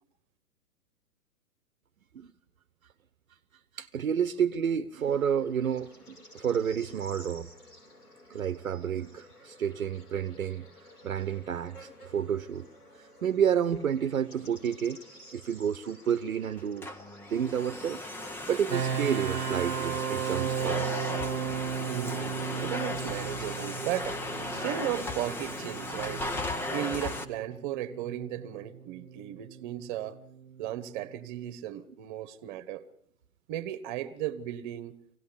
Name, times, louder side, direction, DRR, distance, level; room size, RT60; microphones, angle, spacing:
voice 1, 3.8-7.5 8.3-10.7 11.0-12.7 13.0-15.0 15.3-16.9 17.3-18.0 18.5-20.9, right 8 dB, 65° right, 1.1 m, -30 dB
Bird / Insect, 5.0-22.4, left 1 dB, 85° left, 6.0 m, -54 dB
Domestic sounds home sounds, 16.6-27.2, left 2 dB, 5° left, 0.8 m, -36 dB
sound 1, 18.7-31.5, right 7 dB, 85° right, 0.8 m, -36 dB
voice 2, 21.9-24.2 24.5-26.3 26.7-30.2 30.6-32.8 33.5-35.0, right 12 dB, 35° right, 1.5 m, -35 dB
24.5 x 17.5 x 7.1 m
figure-of-eight pair, 115°, 44 cm